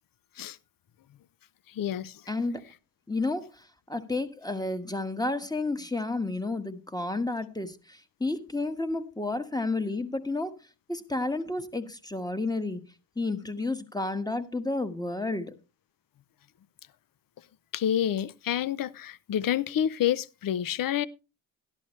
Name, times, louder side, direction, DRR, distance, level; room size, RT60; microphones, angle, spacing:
voice 1, 1.7-2.2 17.7-21.1, left 10 dB, 50° left, 0.7 m, -28 dB
voice 2, 2.3-2.7 3.1-10.6 10.9-15.5, left 2 dB, 10° left, 1.4 m, -31 dB
13.0 x 11.5 x 3.2 m
cardioid pair, 70°, 43 cm